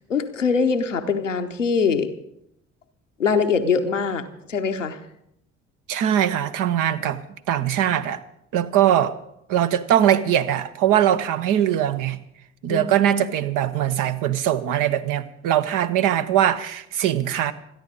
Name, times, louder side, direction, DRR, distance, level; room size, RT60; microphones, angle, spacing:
voice 1, 0.1-2.1 3.2-5.0 12.7-13.1, left 5 dB, 90° left, 0.8 m, -23 dB
voice 2, 5.9-7.2 7.5-8.2 8.5-9.2 9.5-12.2 12.6-17.5, right 10 dB, 60° right, 1.1 m, -21 dB
26.5 x 10.5 x 4.2 m
figure-of-eight pair, 45°, 37 cm